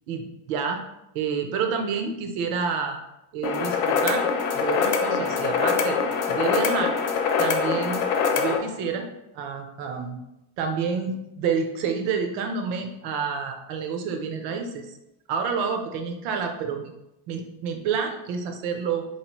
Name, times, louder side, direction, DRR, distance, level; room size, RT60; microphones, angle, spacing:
voice 1, 0.1-0.8 1.1-3.0 3.3-4.3 4.5-6.0 6.3-7.0 7.4-8.0 8.3-9.1 9.3-10.2 10.6-14.9 15.3-16.9 17.3-19.0, right 6 dB, 80° right, 4 dB, 0.8 m, -28 dB
sound 1, 3.4-8.6, left 5 dB, 85° left, 0.7 m, -24 dB
3.9 x 2.9 x 2.9 m, 0.88 s
cardioid pair, 170°, 47 cm